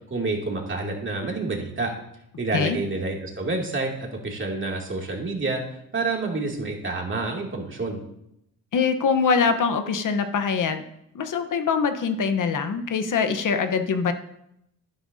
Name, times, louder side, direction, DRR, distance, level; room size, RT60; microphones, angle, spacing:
voice 1, 0.1-1.9 2.4-5.6 5.9-8.0, right 3 dB, 30° right, 0 dB, 2.6 m, -28 dB
voice 2, 8.7-10.8 11.1-14.1, left 5 dB, 55° left, 7 dB, 1.1 m, -23 dB
11.0 x 10.0 x 2.8 m, 0.79 s
cardioid pair, 75°, 37 cm